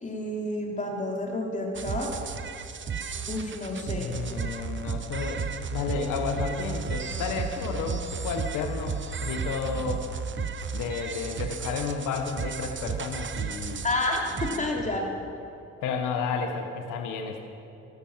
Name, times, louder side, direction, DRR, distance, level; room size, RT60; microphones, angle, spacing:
voice 1, 0.0-2.1 3.3-4.1 13.8-15.2, left 1 dB, 25° left, 0 dB, 3.5 m, -30 dB
sound 1, 1.7-14.6, right 6 dB, 40° right, 1.0 m, -34 dB
voice 2, 4.0-10.0 10.7-13.8 14.6-15.0 15.8-17.4, left 5 dB, 85° left, 4 dB, 1.5 m, -32 dB
14.0 x 13.5 x 7.5 m, 2.8 s
cardioid pair, 90°, 30 cm